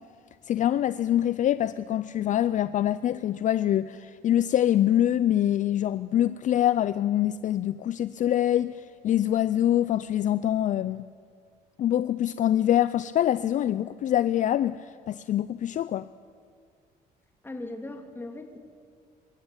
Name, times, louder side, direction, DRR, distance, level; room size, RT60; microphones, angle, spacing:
voice 1, 0.5-11.0 11.8-16.1, left 11 dB, 50° left, 0.4 m, -25 dB
voice 2, 17.4-18.6, left 2 dB, 15° left, 2.4 m, -38 dB
23.5 x 13.5 x 9.0 m
cardioid pair, 110°, 17 cm